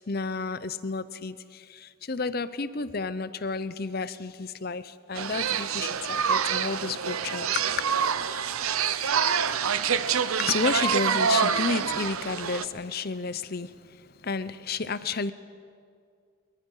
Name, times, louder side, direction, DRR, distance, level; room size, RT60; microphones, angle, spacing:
voice 1, 0.1-7.9 10.4-15.3, left 4 dB, 45° left, 15 dB, 0.7 m, -31 dB
sound 1, 5.2-12.7, right 7 dB, 85° right, 0.9 m, -26 dB
23.5 x 23.0 x 5.6 m, 2.2 s
head